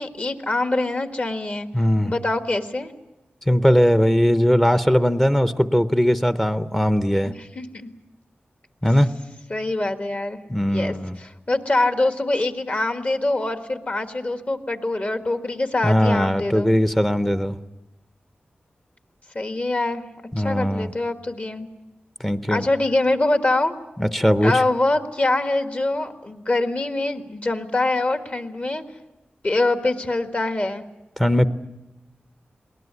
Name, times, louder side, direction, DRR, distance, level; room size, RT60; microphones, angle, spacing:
voice 1, 0.0-1.7 2.0-2.9 7.2-7.9 9.5-10.4 10.7-16.7 19.3-20.0 20.4-21.7 22.5-23.7 24.4-28.8 29.4-30.8, left 2 dB, 40° left, 7 dB, 1.6 m, -24 dB
voice 2, 1.7-2.1 3.5-7.3 8.8-9.1 10.5-11.2 15.8-17.5 20.3-20.9 22.2-22.6 24.0-24.5 31.2-31.5, equal, 10° left, 11 dB, 0.7 m, -19 dB
21.0 x 19.0 x 9.6 m, 0.97 s
wide cardioid pair, 105°, 4 cm